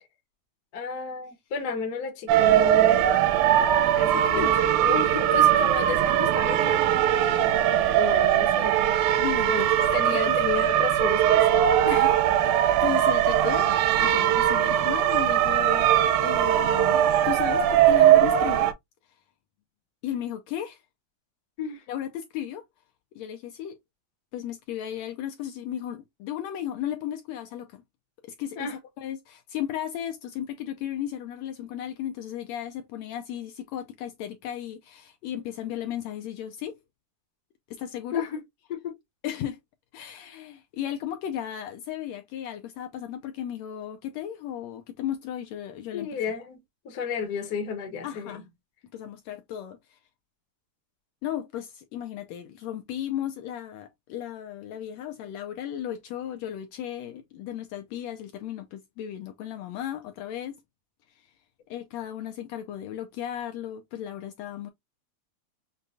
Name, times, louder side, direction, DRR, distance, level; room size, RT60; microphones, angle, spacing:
voice 1, 0.7-3.0 3.9-6.9 7.9-8.8 9.5-12.1 12.7-12.8 21.6-21.8 28.6-28.8 38.1-38.4 38.7-38.9 45.9-48.4, left 6 dB, 55° left, 1.1 m, -32 dB
sound 1, 2.3-18.7, right 11 dB, 85° right, 2.0 m, -21 dB
voice 2, 4.1-4.5 9.2-9.7 10.1-10.4 11.9-13.7 14.0-15.9 16.2-18.7 19.1-19.2 20.0-20.8 21.9-22.7 23.2-23.8 24.3-27.8 28.4-36.8 37.7-38.2 39.2-39.6 39.9-46.1 48.0-48.4 48.9-50.0 51.2-60.6 61.1-61.3 61.7-64.7, left 11 dB, 80° left, 1.6 m, -35 dB
6.6 x 2.2 x 2.6 m
omnidirectional pair, 3.4 m